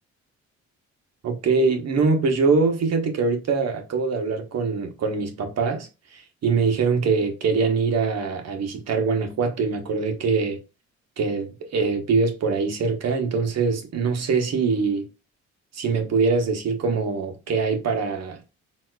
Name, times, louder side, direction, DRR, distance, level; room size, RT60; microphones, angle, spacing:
voice 1, 1.2-10.6 11.2-15.1 15.7-18.4, right 4 dB, 60° right, 1.0 m, -23 dB
4.0 x 2.4 x 2.2 m
cardioid pair, 90°, 30 cm